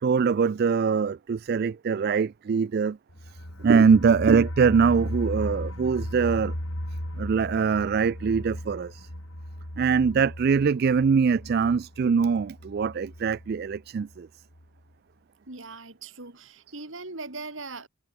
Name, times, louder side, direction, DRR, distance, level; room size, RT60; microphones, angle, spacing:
voice 1, 0.0-3.0 3.6-6.5 7.2-9.1 9.8-14.3, right 5 dB, 45° right, 0.3 m, -23 dB
sound 1, 3.1-13.8 14.1-14.2 14.5-14.6, equal, 80° left, 6.5 m, -36 dB
voice 2, 15.5-17.9, right 3 dB, 65° right, 2.7 m, -40 dB
head